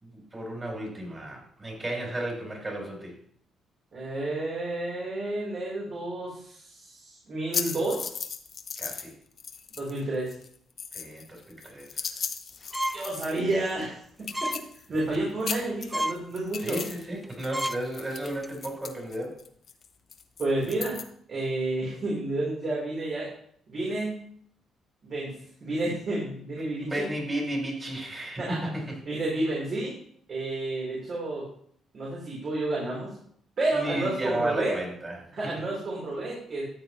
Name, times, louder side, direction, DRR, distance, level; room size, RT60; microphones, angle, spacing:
voice 1, 0.0-3.2 8.8-9.1 10.9-12.1 16.6-19.4 26.6-29.0 33.7-35.3, right 1 dB, 30° right, -1 dB, 4.3 m, -33 dB
voice 2, 3.9-8.2 9.7-10.3 12.9-13.9 14.2-14.5 14.9-16.8 20.4-21.0 21.3-23.3 23.7-24.2 25.0-25.3 25.6-27.1 28.4-28.6 29.1-29.9 30.3-31.5 31.9-33.1 33.6-34.8 35.3-36.6, right 2 dB, 50° right, -5 dB, 4.0 m, -30 dB
sound 1, 7.5-9.1 9.4-10.0 10.3-13.5 13.8-13.9 14.2-15.2 15.4-17.1 17.3-21.0, left 6 dB, 55° left, 0.9 m, -36 dB
sound 2, 12.7-13.1 13.5-13.7 14.3-14.6 15.0-15.2 15.6-15.7 15.9-16.2 16.7-16.9 17.2-17.3 17.5-17.8 18.2-18.5, equal, 5° right, 0.3 m, -31 dB
13.0 x 7.7 x 3.2 m, 0.64 s
cardioid pair, 90°, 0 cm